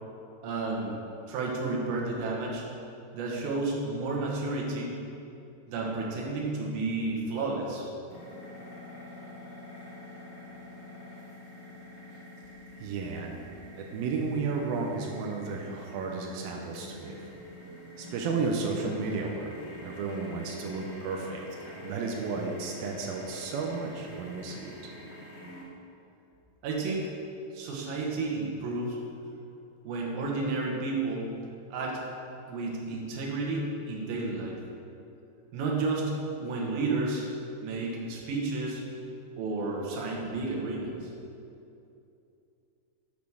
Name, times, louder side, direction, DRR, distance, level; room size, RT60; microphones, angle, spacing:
voice 1, 0.4-1.0 1.3-2.6 3.1-5.0 5.7-7.9 26.6-27.1 27.5-29.0 29.8-31.3 31.7-32.0 32.5-34.6 35.5-37.3 37.6-38.8 39.4-41.1, right 3 dB, 65° right, -2 dB, 2.8 m, -31 dB
sound 1, 8.1-25.6, left 1 dB, 60° left, 1.3 m, -46 dB
voice 2, 12.8-13.4 13.8-17.3 18.0-19.6 19.8-24.7, right 4 dB, 85° right, 0 dB, 2.1 m, -33 dB
8.9 x 6.3 x 6.4 m, 2.7 s
omnidirectional pair, 5.2 m